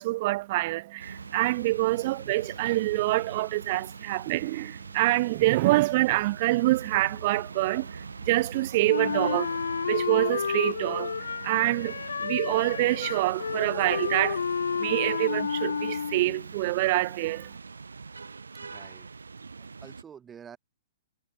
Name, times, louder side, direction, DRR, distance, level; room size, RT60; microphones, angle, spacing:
voice 1, 0.0-17.6, right 19 dB, 40° right, 0.8 m, -26 dB
sound 1, 1.0-20.0, right 4 dB, 75° right, 3.0 m, -43 dB
Wind instrument woodwind instrument, 8.9-16.4, left 6 dB, 70° left, 1.0 m, -31 dB
voice 2, 18.6-19.1 19.6-20.6, right 8 dB, 15° right, 3.7 m, -48 dB
figure-of-eight pair, 115°, 0 cm